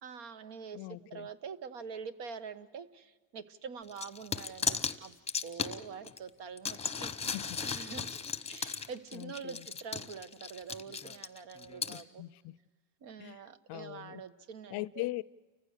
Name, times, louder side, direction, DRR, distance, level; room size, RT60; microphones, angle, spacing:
voice 1, 0.0-5.1 5.4-7.4 7.6-8.1 8.5-12.2 13.0-15.1, right 6 dB, 60° right, 1.4 m, -45 dB
voice 2, 0.7-1.3 7.3-7.6 9.1-9.7 11.9-12.6 13.2-14.2 14.7-15.2, left 19 dB, 55° left, 0.6 m, -41 dB
sound 1, 3.9-6.2 6.6-12.0, left 6 dB, 15° left, 0.9 m, -36 dB
30.0 x 15.0 x 6.6 m
supercardioid pair, 105°, 46 cm